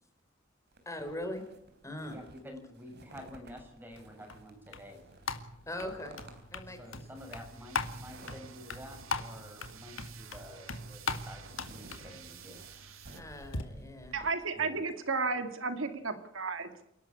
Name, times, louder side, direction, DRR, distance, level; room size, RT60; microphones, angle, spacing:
sound 1, 0.7-14.3, right 1 dB, 55° right, 4.0 m, -55 dB
voice 1, 0.9-1.4 1.8-2.2 5.7-6.2 6.5-6.8 13.1-14.2, left 1 dB, 15° left, 6 dB, 4.3 m, -40 dB
voice 2, 2.0-5.0 5.8-6.1 6.7-12.9 14.5-14.8, equal, 10° right, 4 dB, 6.8 m, -50 dB
sound 2, 4.0-13.6, left 4 dB, 75° left, 2.2 m, -41 dB
sound 3, 7.1-13.2, right 9 dB, 90° right, 2.3 m, -53 dB
voice 3, 14.1-16.8, right 4 dB, 70° right, 8 dB, 2.2 m, -33 dB
28.5 x 12.0 x 8.5 m, 0.79 s
head